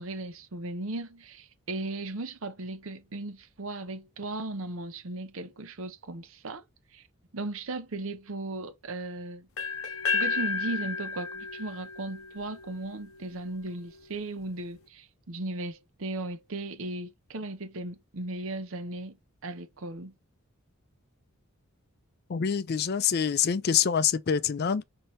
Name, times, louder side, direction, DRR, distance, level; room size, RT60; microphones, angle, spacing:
voice 1, 0.0-6.6 6.9-7.0 7.3-9.5 10.1-19.2 19.4-20.1, right 2 dB, 65° right, 0.7 m, -37 dB
sound 1, 9.6-13.4, left 5 dB, 70° left, 0.8 m, -32 dB
voice 2, 22.3-24.8, left 7 dB, 45° left, 0.4 m, -26 dB
5.7 x 2.8 x 3.1 m
head